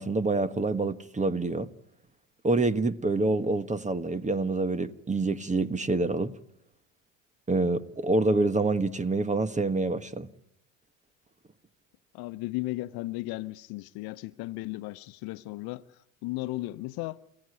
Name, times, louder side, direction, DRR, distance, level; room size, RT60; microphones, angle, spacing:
voice 1, 0.0-1.7 2.4-6.3 7.5-10.3, right 3 dB, 20° right, 1.4 m, -27 dB
voice 2, 12.1-15.9 16.2-17.2, left 19 dB, 65° left, 1.0 m, -35 dB
28.5 x 16.0 x 9.7 m
hypercardioid pair, 75°, 40 cm